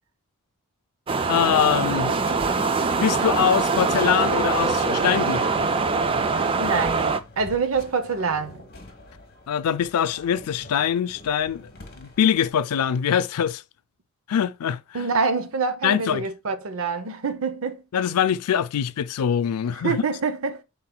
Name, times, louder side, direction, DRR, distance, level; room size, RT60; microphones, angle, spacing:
sound 1, 1.1-7.2, right 4 dB, 25° right, 0.3 m, -23 dB
voice 1, 1.3-2.2 3.0-5.5 9.5-11.7 12.0-13.6 14.3-15.1 15.8-16.3 17.9-20.0, left 8 dB, 85° left, 0.4 m, -23 dB
sound 2, 1.9-12.5, left 2 dB, 45° left, 1.1 m, -46 dB
voice 2, 6.6-7.0 7.4-8.6 14.9-17.8 19.7-20.6, right 4 dB, 65° right, 0.6 m, -26 dB
5.8 x 3.8 x 2.2 m
head